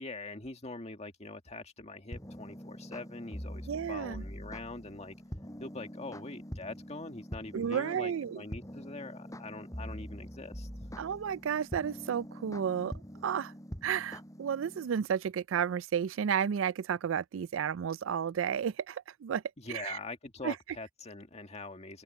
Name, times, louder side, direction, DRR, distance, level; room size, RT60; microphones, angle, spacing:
voice 1, 0.0-5.2 5.6-11.0 19.6-22.0, left 3 dB, 35° left, 1.8 m, -43 dB
sound 1, 2.1-14.9, equal, 15° left, 5.9 m, -44 dB
voice 2, 3.7-4.2 7.5-8.4 11.0-12.9 13.2-13.5 13.8-19.4 19.7-20.0 20.4-20.5, right 8 dB, 80° right, 0.4 m, -32 dB
open air
head